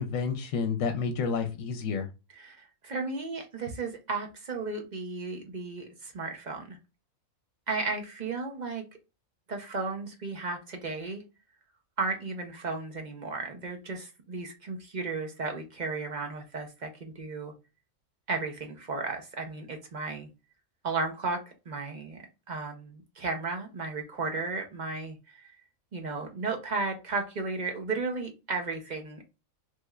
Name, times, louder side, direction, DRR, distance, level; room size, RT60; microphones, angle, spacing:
voice 1, 0.0-2.1, left 5 dB, 75° left, 6 dB, 0.9 m, -30 dB
voice 2, 2.4-6.8 7.7-8.8 9.5-11.2 12.0-17.5 18.3-20.3 20.8-25.5 25.9-29.2, right 3 dB, 45° right, 2 dB, 0.6 m, -34 dB
3.2 x 3.1 x 2.3 m, 0.28 s
omnidirectional pair, 1.4 m